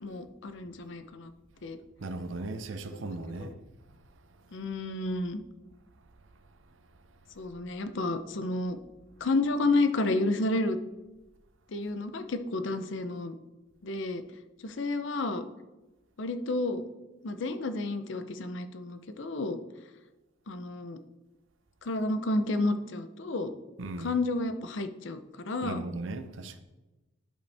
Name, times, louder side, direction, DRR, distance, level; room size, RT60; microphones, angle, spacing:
voice 1, 0.0-1.3 1.6-1.8 3.4-3.5 4.5-5.4 7.4-8.8 9.2-10.8 11.7-13.3 13.8-14.2 14.6-15.4 16.2-16.8 17.2-19.6 20.5-21.0 21.8-23.5 24.0-25.2 25.4-25.8, left 2 dB, 65° left, 0.6 m, -30 dB
voice 2, 2.0-3.6 23.8-24.1 25.6-26.6, right 2 dB, 75° right, 0.6 m, -37 dB
11.0 x 5.3 x 3.4 m
head